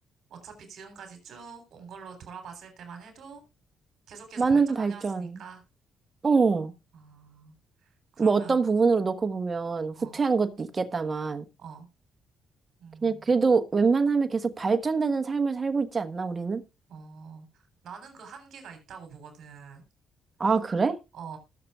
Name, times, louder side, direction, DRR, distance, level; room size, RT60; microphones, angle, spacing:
voice 1, 0.3-3.4 4.1-5.6 6.9-7.6 7.8-8.6 10.0-10.2 11.6-11.9 12.8-13.3 16.9-19.8 21.1-21.4, right 6 dB, 65° right, 6 dB, 3.6 m, -45 dB
voice 2, 4.4-5.4 6.2-6.7 8.2-11.4 13.0-16.6 20.4-21.0, right 4 dB, 30° right, 9 dB, 1.2 m, -24 dB
20.0 x 6.8 x 2.4 m, 0.26 s
cardioid pair, 90°, 0 cm